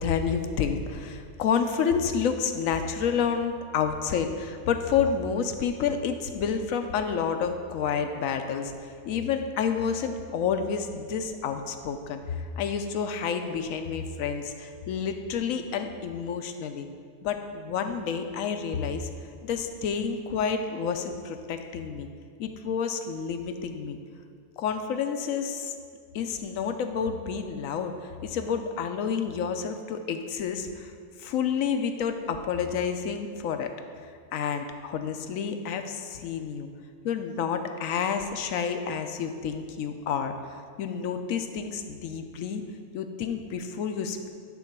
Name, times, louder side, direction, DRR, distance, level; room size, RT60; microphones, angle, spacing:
voice 1, 0.0-16.9 17.2-19.1 19.4-22.1 22.4-24.0 24.6-25.7 26.1-30.9 31.2-33.7 34.3-36.7 37.0-40.4 40.8-42.6 42.9-44.3, left 6 dB, 75° left, 7 dB, 1.0 m, -29 dB
10.5 x 3.9 x 5.9 m, 2.1 s
omnidirectional pair, 1.4 m